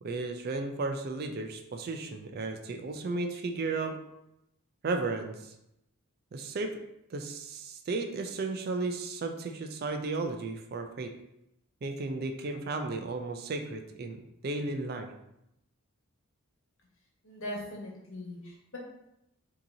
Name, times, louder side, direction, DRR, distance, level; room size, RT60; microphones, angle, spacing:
voice 1, 0.0-4.0 4.8-5.5 6.3-6.7 7.1-11.1 11.8-15.1, right 3 dB, 45° right, 5 dB, 0.4 m, -34 dB
voice 2, 17.2-18.8, left 1 dB, 65° left, -3 dB, 1.2 m, -40 dB
5.5 x 2.8 x 2.7 m, 0.83 s
head